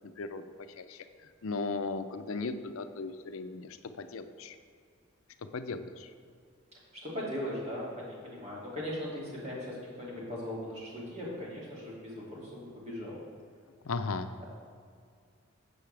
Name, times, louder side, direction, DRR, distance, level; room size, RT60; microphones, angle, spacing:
voice 1, 1.4-4.6 5.5-6.1 13.8-14.3, left 3 dB, 80° left, 9 dB, 0.5 m, -36 dB
voice 2, 6.9-13.2, left 1 dB, 30° right, -6 dB, 2.4 m, -39 dB
10.5 x 7.9 x 3.4 m, 2.2 s
head